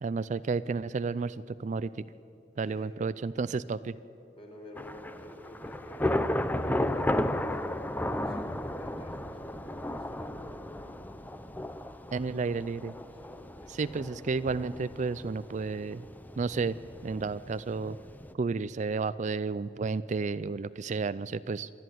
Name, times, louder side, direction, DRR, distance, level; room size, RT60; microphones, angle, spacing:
voice 1, 0.0-1.9 2.6-4.0 12.1-12.9 13.7-16.1 16.4-16.8 17.0-18.0 18.3-21.7, right 4 dB, 40° right, 15 dB, 0.4 m, -32 dB
voice 2, 4.3-7.9 8.2-11.5 13.1-14.2, equal, 30° left, 0 dB, 4.4 m, -50 dB
Thunder / Rain, 4.8-18.3, left 1 dB, 10° left, 0.6 m, -34 dB
27.0 x 11.0 x 9.3 m, 2.9 s
head